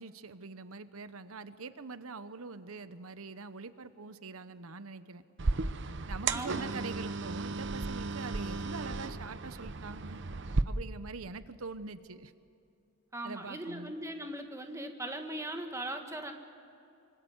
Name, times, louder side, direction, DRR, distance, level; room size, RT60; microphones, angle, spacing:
voice 1, 0.0-5.2 6.1-10.2 10.6-12.3 13.2-14.0, right 4 dB, 85° right, 12 dB, 0.9 m, -44 dB
sound 1, 5.4-10.6, right 3 dB, 55° right, 0.8 m, -34 dB
voice 2, 6.3-6.9 13.1-16.3, right 1 dB, 15° right, 4 dB, 1.8 m, -39 dB
25.5 x 25.0 x 8.1 m, 2.6 s
head